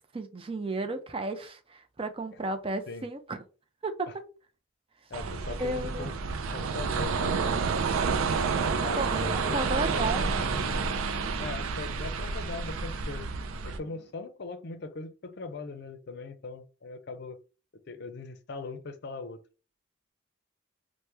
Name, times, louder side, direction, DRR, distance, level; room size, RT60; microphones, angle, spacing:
voice 1, 0.1-3.4 3.8-4.1 5.6-6.1 9.0-10.3, right 2 dB, 25° right, 0.4 m, -33 dB
voice 2, 5.1-6.1 6.5-7.6 8.7-9.6 9.9-10.1 11.4-13.3 13.6-17.4 17.9-19.4, left 3 dB, 50° left, 0.5 m, -40 dB
sound 1, 5.1-13.8, right 5 dB, 85° right, 0.4 m, -29 dB
sound 2, 8.8-14.1, equal, 70° right, 0.9 m, -43 dB
3.0 x 2.1 x 3.3 m
head